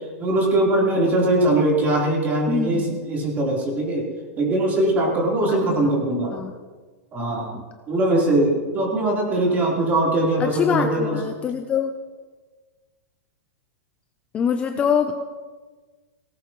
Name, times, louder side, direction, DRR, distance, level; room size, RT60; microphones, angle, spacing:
voice 1, 0.2-4.1 4.4-6.3 7.1-11.2 15.2-15.3, right 1 dB, 20° right, -3 dB, 3.7 m, -21 dB
voice 2, 2.5-3.0 5.5-5.9 6.3-6.5 7.5-7.6 9.4-9.8 10.4-11.9 14.3-15.2, left 7 dB, 15° left, 7 dB, 0.5 m, -25 dB
18.0 x 17.0 x 3.1 m, 1.4 s
supercardioid pair, 155°, 8 cm